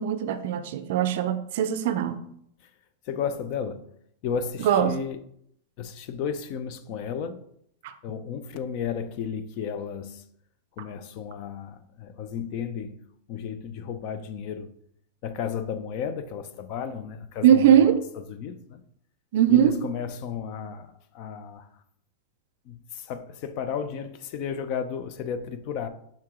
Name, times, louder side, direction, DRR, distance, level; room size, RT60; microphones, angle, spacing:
voice 1, 0.0-2.2 4.6-4.9 17.4-18.0 19.3-19.8, right 10 dB, 50° right, 0.5 m, -20 dB
voice 2, 3.1-3.8 4.2-5.2 5.8-7.4 8.0-10.2 10.8-13.0 13.3-14.7 15.2-18.0 18.3-18.8 19.5-21.7 22.7-25.9, left 7 dB, 35° left, 0.5 m, -33 dB
5.7 x 4.6 x 3.6 m
supercardioid pair, 175°, 0 cm